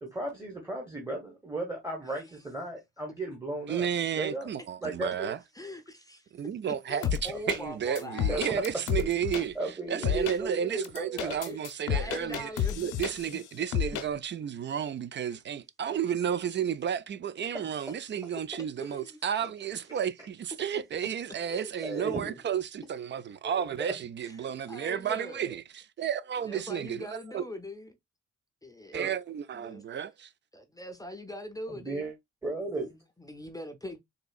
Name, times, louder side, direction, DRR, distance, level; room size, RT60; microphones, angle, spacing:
voice 1, 0.0-3.9 4.1-4.5 4.8-5.3 8.3-8.6 9.5-11.6 17.5-17.7 21.8-22.4 23.4-23.9 28.9-29.1 31.7-32.1 32.4-33.0, right 2 dB, 10° right, 1.1 m, -35 dB
voice 2, 3.7-5.4 6.3-12.5 12.8-27.4 28.9-30.3, right 8 dB, 40° right, 0.4 m, -32 dB
voice 3, 5.5-6.3 6.6-8.6 10.1-10.3 11.4-13.4 15.2-15.4 15.9-16.0 17.4-18.0 18.8-19.2 19.6-19.8 21.5-21.9 24.2-25.6 26.5-28.0 28.6-29.0 29.5-29.8 30.5-32.1 33.2-34.0, left 1 dB, 10° left, 0.6 m, -43 dB
sound 1, 7.0-7.6 8.0-9.4 10.0-10.4 10.8-13.4 13.7-14.1, left 9 dB, 85° left, 0.8 m, -30 dB
4.0 x 2.6 x 2.3 m
cardioid pair, 90°, 30 cm